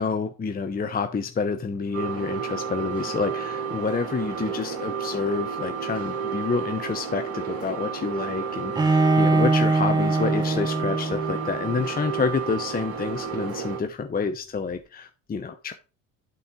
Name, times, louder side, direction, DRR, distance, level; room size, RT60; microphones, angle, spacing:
voice 1, 0.0-15.7, left 5 dB, 20° left, 7 dB, 0.8 m, -28 dB
sound 1, 1.9-13.8, right 6 dB, 35° right, 2.0 m, -31 dB
Bowed string instrument, 8.7-11.7, right 3 dB, 10° right, 0.4 m, -22 dB
11.5 x 4.0 x 3.8 m, 0.33 s
hypercardioid pair, 65°, 42 cm